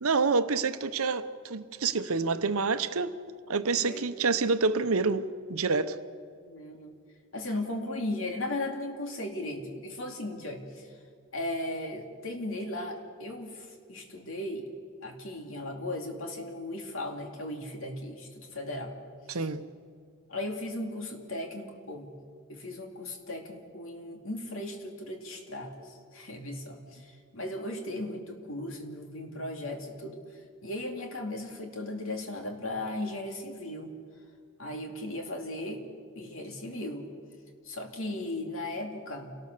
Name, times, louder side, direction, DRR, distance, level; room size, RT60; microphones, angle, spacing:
voice 1, 0.0-3.2 3.5-6.0 19.3-19.6, right 4 dB, 75° right, 11 dB, 0.9 m, -27 dB
voice 2, 6.4-6.9 7.3-10.9 11.3-14.7 15.0-18.9 19.3-19.5 20.3-22.1 22.5-30.2 30.6-33.9 34.6-35.8 36.2-37.1 37.6-39.4, left 1 dB, 65° left, 3 dB, 2.7 m, -37 dB
28.5 x 18.5 x 6.7 m, 2.1 s
head